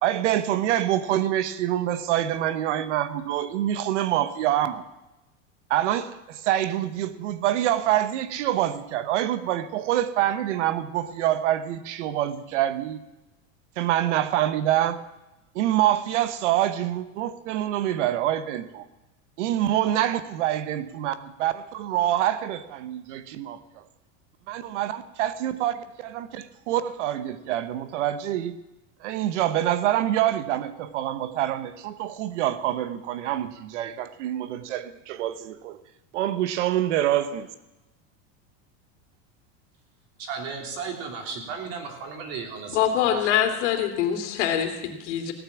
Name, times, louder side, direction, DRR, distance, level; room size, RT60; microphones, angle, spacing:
voice 1, 0.0-4.8 5.7-13.0 13.8-15.0 15.5-18.9 19.4-23.8 24.5-28.6 29.0-35.8 36.1-37.5, right 12 dB, 80° right, 12 dB, 1.1 m, -26 dB
voice 2, 40.2-43.6, right 5 dB, 45° right, 2 dB, 3.3 m, -35 dB
voice 3, 42.7-45.3, left 9 dB, 80° left, 4 dB, 2.7 m, -24 dB
17.0 x 9.5 x 7.2 m, 1.0 s
supercardioid pair, 170°, 35 cm